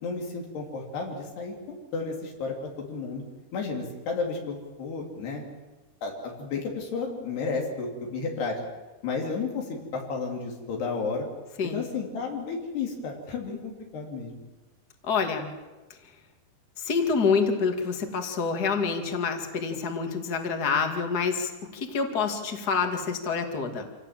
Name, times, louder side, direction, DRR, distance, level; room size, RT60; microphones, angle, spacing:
voice 1, 0.0-3.2 3.5-5.5 6.0-6.1 6.4-8.6 9.0-9.6 9.9-11.3 11.6-14.3, left 4 dB, 85° left, 0 dB, 5.2 m, -32 dB
voice 2, 15.0-15.5 16.8-23.9, left 5 dB, 30° left, 5 dB, 2.1 m, -27 dB
27.5 x 17.5 x 7.5 m, 1.2 s
omnidirectional pair, 4.6 m